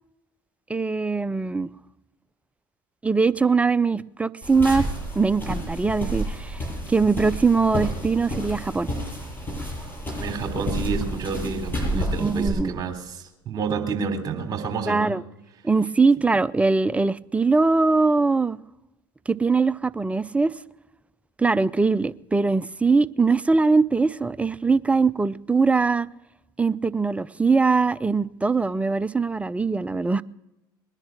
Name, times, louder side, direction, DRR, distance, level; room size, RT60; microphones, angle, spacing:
voice 1, 0.7-1.7 3.0-4.9 5.2-6.6 6.9-8.9 11.9-12.7 14.9-15.2 15.6-18.6 19.3-20.5 21.4-26.1 26.6-30.2, right 4 dB, 10° right, 0.5 m, -21 dB
sound 1, 4.4-12.5, equal, 15° left, 7.2 m, -30 dB
voice 2, 10.2-15.2, right 5 dB, 35° right, 3.3 m, -29 dB
21.0 x 10.5 x 6.0 m
hypercardioid pair, 75°, 11 cm